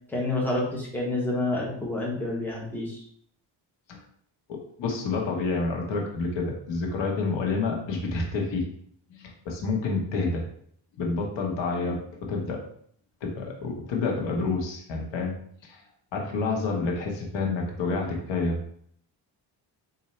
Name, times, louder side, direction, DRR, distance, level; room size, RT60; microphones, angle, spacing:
voice 1, 0.1-3.0, left 2 dB, 5° left, -3 dB, 1.3 m, -28 dB
voice 2, 4.5-8.7 9.1-10.4 11.0-12.6 13.2-15.4 15.6-15.8 16.1-18.6, left 3 dB, 85° left, 0 dB, 1.2 m, -29 dB
4.2 x 2.7 x 4.2 m, 0.63 s
cardioid pair, 115°, 43 cm